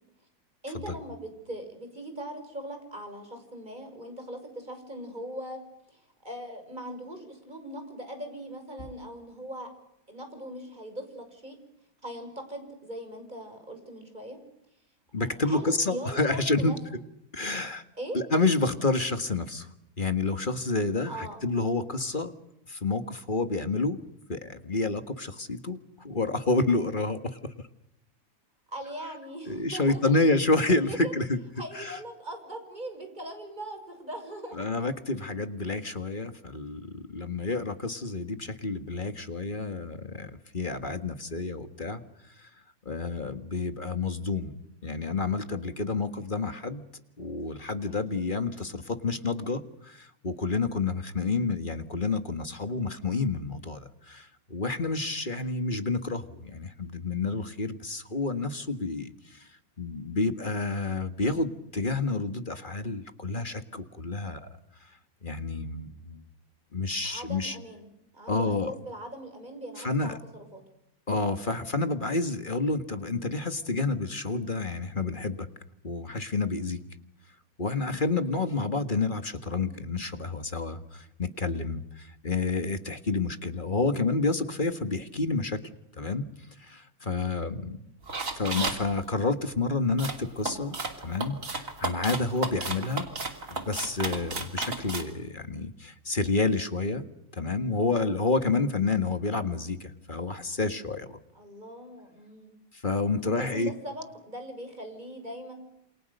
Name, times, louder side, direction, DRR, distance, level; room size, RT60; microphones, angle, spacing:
voice 1, 0.6-5.6 5.9-9.7 10.1-11.6 12.0-14.4 15.4-16.8 17.9-18.2 21.1-21.4 28.7-30.2 30.9-31.1 31.6-34.7 48.1-48.2 67.0-70.6 78.2-78.4 87.4-87.7 101.3-102.6 103.2-105.5, right 1 dB, 20° right, 5 dB, 6.4 m, -40 dB
voice 2, 15.1-16.7 17.3-17.8 18.1-19.7 20.0-22.3 22.7-24.0 24.3-27.4 29.5-31.4 31.7-32.0 34.5-42.0 42.4-42.5 42.9-44.5 44.8-46.8 47.2-59.5 59.8-64.5 65.2-66.2 66.7-67.6 68.3-68.7 69.8-70.2 71.1-75.5 75.8-76.8 77.6-85.6 86.0-86.3 86.6-87.9 88.4-93.1 93.5-97.0 97.3-101.2 102.7-103.7, left 3 dB, 25° left, 9 dB, 1.7 m, -29 dB
sound 1, 88.1-88.8 90.0-95.0, right 3 dB, 40° right, 3.3 m, -33 dB
28.5 x 27.5 x 6.7 m, 0.83 s
omnidirectional pair, 2.1 m